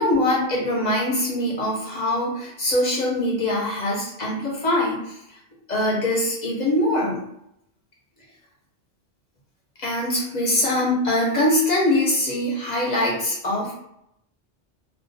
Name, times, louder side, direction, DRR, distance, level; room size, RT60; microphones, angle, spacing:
voice 1, 0.0-5.2 5.7-7.2 9.8-13.8, left 1 dB, 50° left, -3 dB, 0.6 m, -23 dB
2.2 x 2.1 x 2.6 m, 0.77 s
omnidirectional pair, 1.2 m